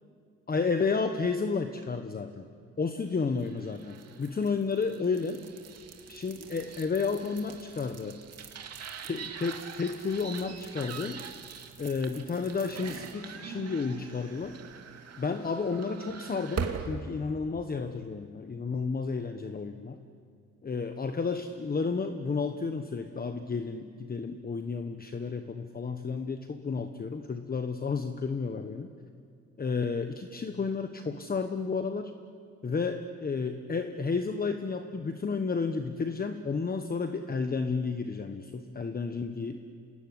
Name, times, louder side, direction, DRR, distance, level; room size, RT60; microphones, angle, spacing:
voice 1, 0.5-2.4 2.8-5.4 6.1-8.2 9.0-11.2 11.8-14.6 15.2-20.0 20.6-28.9 29.6-32.1 32.6-39.6, left 4 dB, 30° left, 7 dB, 1.3 m, -32 dB
sound 1, 3.3-17.0, right 6 dB, 55° right, 2.6 m, -42 dB
27.0 x 19.5 x 9.9 m, 2.3 s
cardioid pair, 90°, 30 cm